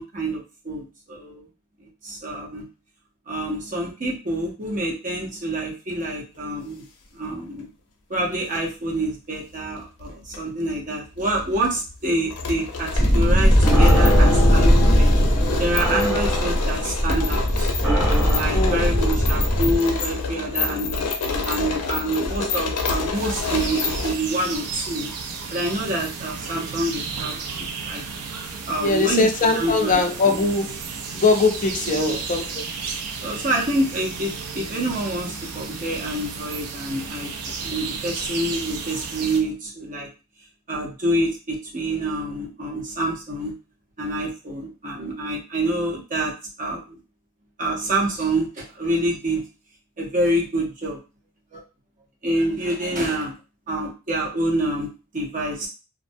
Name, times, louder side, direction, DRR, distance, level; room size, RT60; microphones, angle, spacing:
voice 1, 0.0-1.5 2.0-2.6 3.3-6.8 7.1-7.7 8.1-15.1 15.6-17.7 18.2-25.1 25.5-28.0 28.7-29.3 29.5-30.0 31.9-32.2 33.2-40.1 40.7-43.5 44.0-46.3 46.6-46.8 47.6-49.4 50.0-51.0 51.5-51.6 52.2-53.3 53.7-55.7, right 1 dB, 35° right, 0.7 m, -27 dB
sound 1, 8.3-8.6 9.6-10.4 10.7-10.8 11.2-24.1, left 4 dB, 85° left, 0.5 m, -28 dB
sound 2, 12.9-19.8, equal, 20° right, 1.0 m, -18 dB
voice 2, 18.5-18.9 28.8-30.8 31.1-32.6, left 3 dB, 35° left, 0.4 m, -21 dB
sound 3, 23.1-39.4, right 5 dB, 75° right, 0.4 m, -33 dB
2.5 x 2.0 x 2.6 m
head